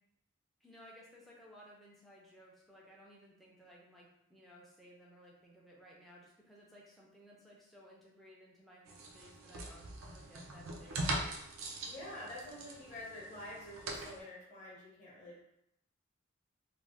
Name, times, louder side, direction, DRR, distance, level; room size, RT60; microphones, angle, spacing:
voice 1, 0.6-11.5, equal, ahead, -4 dB, 0.4 m, -58 dB
sound 1, 8.9-14.2, right 2 dB, 90° right, 0.5 m, -42 dB
voice 2, 11.9-15.4, left 1 dB, 35° left, -5 dB, 0.8 m, -47 dB
2.5 x 2.0 x 3.3 m, 0.79 s
head